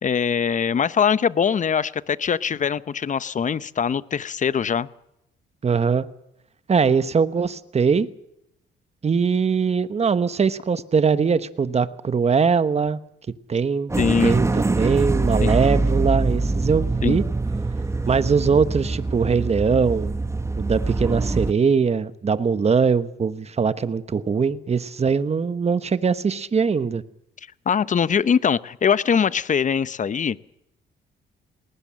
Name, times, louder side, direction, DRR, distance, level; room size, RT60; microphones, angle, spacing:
voice 1, 0.0-4.9 14.0-14.4 15.4-15.5 17.0-17.2 27.7-30.4, left 7 dB, 40° left, 0.8 m, -22 dB
voice 2, 5.6-6.1 6.7-8.1 9.0-13.0 13.5-13.9 14.2-17.2 18.1-20.2 20.6-27.0, right 5 dB, 35° right, 1.2 m, -21 dB
sound 1, 13.9-21.5, right 2 dB, 15° right, 1.0 m, -24 dB
20.0 x 19.0 x 7.6 m
cardioid pair, 90°, 20 cm